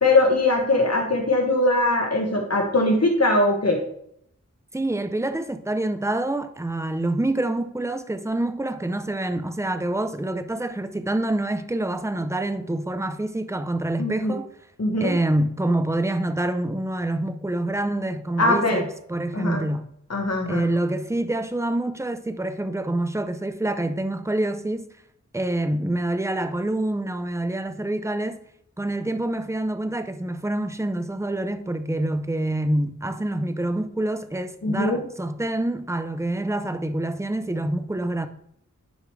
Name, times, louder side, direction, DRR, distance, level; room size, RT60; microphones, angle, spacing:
voice 1, 0.0-3.8 14.0-14.3 14.8-15.1 18.4-18.8 19.3-19.6 20.1-20.6 34.6-35.0, left 2 dB, 55° left, 1.4 m, -21 dB
voice 2, 4.7-14.5 15.0-19.9 20.5-24.9 25.3-28.4 28.8-38.3, right 1 dB, 10° right, 0.5 m, -26 dB
10.5 x 4.9 x 3.2 m
wide cardioid pair, 75°, 30 cm